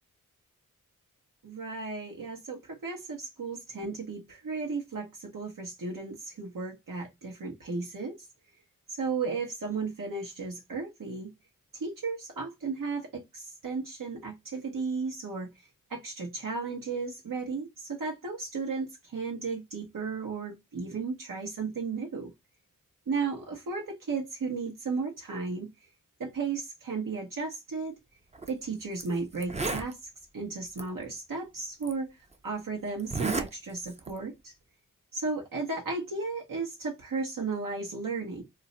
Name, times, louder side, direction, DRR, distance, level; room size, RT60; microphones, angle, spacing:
voice 1, 1.4-8.2 8.9-11.3 11.7-22.3 23.1-25.7 26.2-28.0 28.5-30.0 30.3-32.2 32.4-34.5 35.1-38.4, right 4 dB, 70° right, 0.9 m, -34 dB
Zipper (clothing), 28.3-28.5 29.0-29.1 29.4-29.9 30.8-30.9 31.8-31.9 33.0-33.5 33.8-34.2, right 3 dB, 20° right, 0.6 m, -32 dB
2.5 x 2.1 x 3.8 m
cardioid pair, 45°, 34 cm